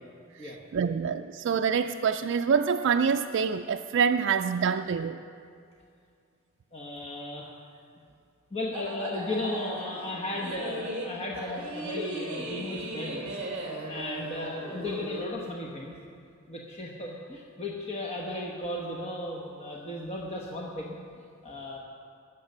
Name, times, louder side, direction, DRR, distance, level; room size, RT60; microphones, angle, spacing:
voice 1, 0.3-5.2, right 6 dB, 55° right, 5 dB, 0.3 m, -26 dB
voice 2, 6.7-7.5 8.5-13.4 13.9-16.0 16.5-20.9 21.4-21.8, left 1 dB, 30° left, -2 dB, 1.1 m, -35 dB
sound 1, 8.7-15.3, right 1 dB, 30° right, 2.1 m, -37 dB
20.0 x 7.3 x 6.6 m, 2.4 s
head